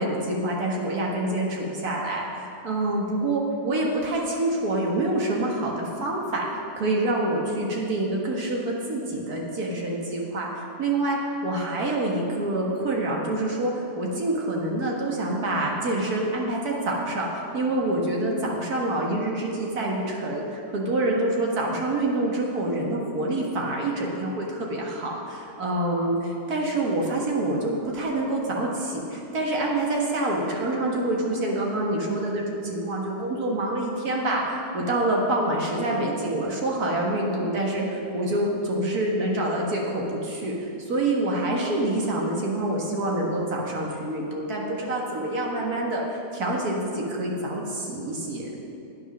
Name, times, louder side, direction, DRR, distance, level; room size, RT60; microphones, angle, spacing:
voice 1, 0.0-6.5 6.8-26.2 26.5-48.5, right 1 dB, 65° right, -2 dB, 2.0 m, -26 dB
9.7 x 8.4 x 6.1 m, 2.7 s
omnidirectional pair, 1.7 m